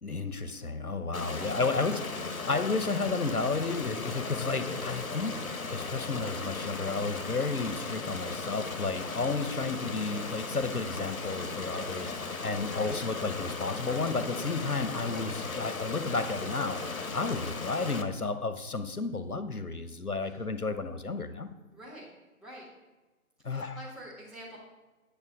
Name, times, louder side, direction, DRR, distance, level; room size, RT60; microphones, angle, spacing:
voice 1, 0.0-2.0 2.3-5.4 5.7-12.1 12.4-21.5 23.4-23.8, left 3 dB, 90° left, 10 dB, 1.1 m, -32 dB
Stream, 1.1-18.0, left 4 dB, 70° left, 1.3 m, -37 dB
voice 2, 1.2-2.2 11.9-12.3 12.6-13.0 20.2-20.4 21.7-22.1 22.4-22.6 23.5-24.6, equal, ahead, -7 dB, 1.0 m, -47 dB
11.0 x 6.7 x 5.2 m, 1.2 s
figure-of-eight pair, 145°, 43 cm